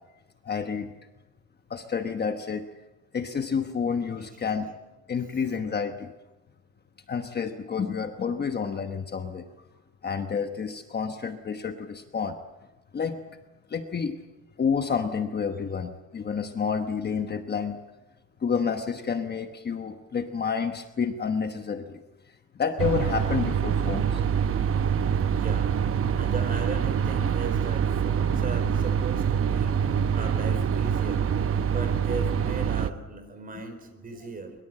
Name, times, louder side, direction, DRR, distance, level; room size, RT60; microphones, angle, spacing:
voice 1, 0.4-0.9 1.7-2.6 3.1-4.7 5.1-6.1 7.1-9.5 10.0-12.4 12.9-13.2 13.7-14.2 14.6-17.8 18.4-22.0 22.5-24.2, left 6 dB, 30° left, 6 dB, 1.1 m, -29 dB
sound 1, 22.8-32.9, right 7 dB, 40° right, 0.9 m, -25 dB
voice 2, 25.3-25.7 26.2-29.7 30.1-31.2 31.6-34.5, right 3 dB, 25° right, 6 dB, 4.4 m, -37 dB
23.0 x 22.0 x 7.7 m, 1.1 s
cardioid pair, 170°, 33 cm